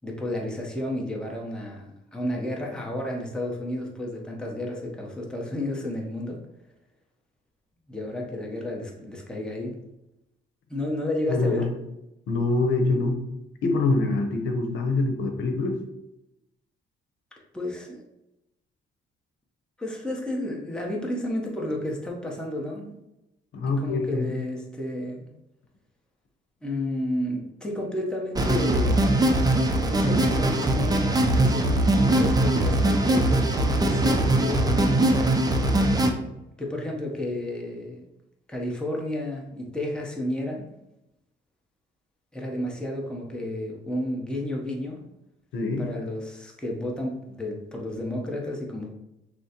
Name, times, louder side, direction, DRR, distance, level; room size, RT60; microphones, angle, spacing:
voice 1, 0.0-6.4 7.9-9.8 10.7-11.7 17.5-18.0 19.8-22.9 23.8-25.3 26.6-35.2 36.6-38.0 38.5-40.7 42.3-45.0 45.8-48.9, left 1 dB, 5° left, -2 dB, 0.9 m, -32 dB
voice 2, 11.3-11.7 12.3-13.2 13.6-15.8 23.5-24.3 45.5-45.9, left 3 dB, 75° left, 4 dB, 0.8 m, -24 dB
sound 1, 28.3-36.1, right 1 dB, 20° right, 0.5 m, -21 dB
6.1 x 2.1 x 2.9 m, 0.90 s
cardioid pair, 90°, 20 cm